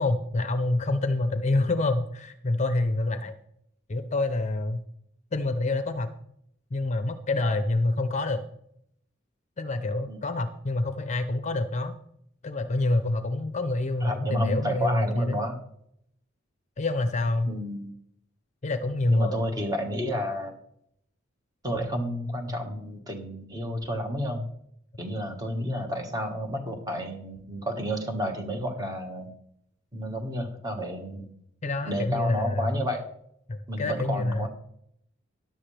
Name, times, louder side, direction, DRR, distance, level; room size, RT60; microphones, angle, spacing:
voice 1, 0.0-3.3 3.9-4.8 5.3-6.1 6.7-8.4 9.6-12.0 12.4-15.4 16.8-17.5 18.6-19.4 31.6-32.7 33.5-34.5, left 2 dB, 35° left, 10 dB, 0.6 m, -27 dB
voice 2, 14.0-15.6 17.5-17.9 19.1-20.5 21.6-24.5 25.0-29.3 29.9-31.3 31.8-33.0 33.7-34.5, equal, 20° right, 4 dB, 1.6 m, -31 dB
13.5 x 10.5 x 3.4 m, 0.73 s
head